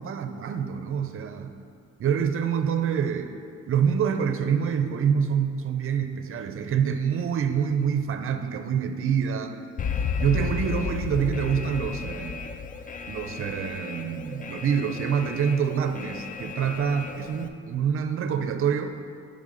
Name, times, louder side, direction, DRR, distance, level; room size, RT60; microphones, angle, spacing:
voice 1, 0.0-1.5 2.0-3.4 3.7-9.6 10.2-12.5 13.1-19.0, right 7 dB, 45° right, 7 dB, 0.5 m, -26 dB
Alarm, 9.8-17.5, left 5 dB, 30° left, 0.4 m, -33 dB
10.0 x 3.4 x 3.8 m, 2.3 s
cardioid pair, 90°, 30 cm